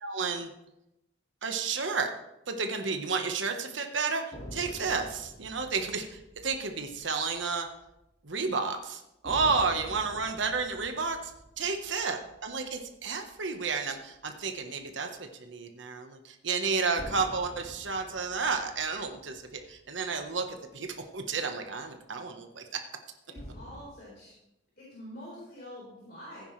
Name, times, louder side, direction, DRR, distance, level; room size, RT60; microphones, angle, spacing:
voice 1, 0.0-0.5 1.4-2.1 2.5-7.7 8.2-11.3 11.6-22.8, right 4 dB, 80° right, 5 dB, 1.2 m, -31 dB
sound 1, 4.3-8.0 8.3-8.5 9.2-13.9 17.0-20.6 23.4-23.8, equal, 35° left, 1.9 m, -47 dB
voice 2, 23.3-24.3 24.8-26.4, equal, 55° left, -6 dB, 4.4 m, -46 dB
15.5 x 9.7 x 3.3 m, 0.87 s
head